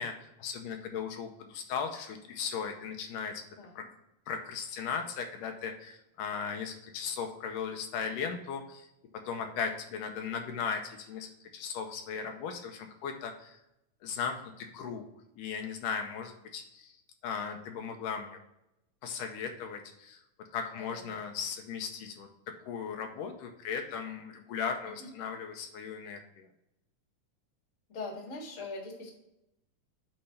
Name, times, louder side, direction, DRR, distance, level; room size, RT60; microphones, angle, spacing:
voice 1, 0.0-3.5 3.8-3.9 4.3-8.9 9.3-13.6 14.0-15.1 15.4-17.0 17.2-18.4 19.0-20.2 20.5-22.3 22.6-26.5, left 6 dB, 80° left, 4 dB, 2.3 m, -37 dB
voice 2, 20.7-21.1 24.8-25.1 27.9-29.1, left 3 dB, 30° left, 0 dB, 1.5 m, -42 dB
8.6 x 3.4 x 5.4 m, 0.87 s
omnidirectional pair, 3.8 m